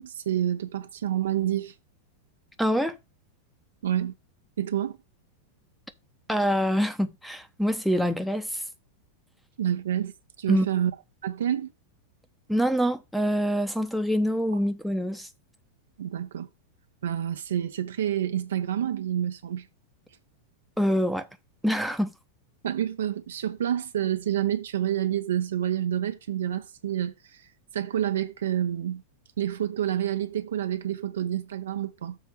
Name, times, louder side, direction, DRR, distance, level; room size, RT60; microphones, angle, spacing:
voice 1, 0.0-1.7 3.8-4.1 4.6-5.0 9.6-10.1 10.4-10.9 11.2-11.7 16.0-16.5 17.0-19.7 22.6-27.1 27.7-29.0 29.4-32.2, right 10 dB, 65° right, 1.0 m, -28 dB
voice 2, 2.6-2.9 6.3-8.6 10.5-10.7 12.5-15.3 20.8-21.3 21.6-22.1, equal, ahead, 0.9 m, -25 dB
7.0 x 4.5 x 6.6 m
figure-of-eight pair, 90°, 0 cm